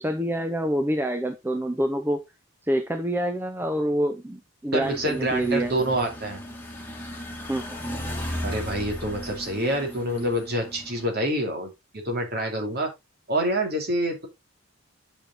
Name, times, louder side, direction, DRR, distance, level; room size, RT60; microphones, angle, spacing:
voice 1, 0.0-2.2 2.7-5.9 7.5-8.0, right 1 dB, 10° right, 0.6 m, -27 dB
voice 2, 4.7-6.4 8.4-12.9 13.3-14.3, right 1 dB, 50° right, 2.8 m, -27 dB
sound 1, 4.8-11.1, left 1 dB, 10° left, 1.8 m, -36 dB
8.6 x 5.4 x 3.7 m
head